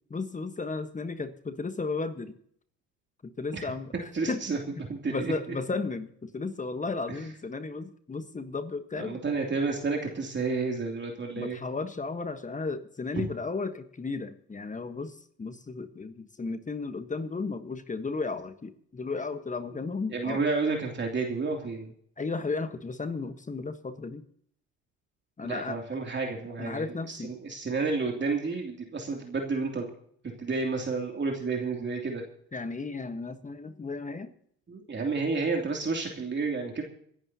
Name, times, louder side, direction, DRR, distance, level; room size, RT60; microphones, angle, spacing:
voice 1, 0.1-2.4 3.2-4.5 4.7-9.2 11.4-20.4 22.2-24.2 25.4-25.8 26.6-27.3 32.5-34.3, left 3 dB, 20° left, 10 dB, 1.3 m, -34 dB
voice 2, 4.1-4.6 4.9-5.3 9.0-11.6 13.2-13.3 20.1-21.9 25.4-29.9 30.4-32.2 34.7-36.8, right 4 dB, 30° right, 1 dB, 3.0 m, -30 dB
26.0 x 11.0 x 2.9 m, 0.64 s
hypercardioid pair, 70°, 35 cm